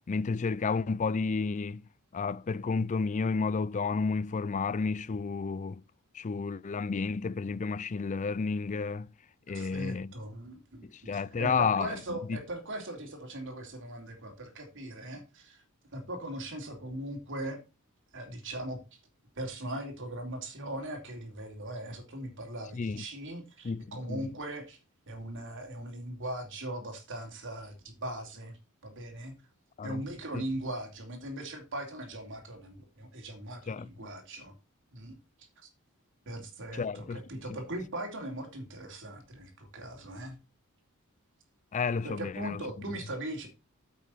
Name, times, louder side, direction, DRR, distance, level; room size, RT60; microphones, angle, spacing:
voice 1, 0.1-1.8 2.1-5.8 6.1-9.1 9.5-10.1 10.8-12.0 12.3-12.4 22.7-23.0 23.6-24.3 29.8-30.0 30.3-30.4 33.7-34.1 36.7-37.2 41.7-42.6 42.9-43.0, left 4 dB, 35° left, 0.4 m, -31 dB
voice 2, 9.5-15.6 15.9-17.6 18.1-19.0 19.4-24.8 25.1-28.6 28.8-29.4 29.8-34.5 34.9-35.2 35.6-35.7 36.2-40.4 42.0-43.5, right 1 dB, 60° right, 3.3 m, -39 dB
8.7 x 8.2 x 4.2 m
head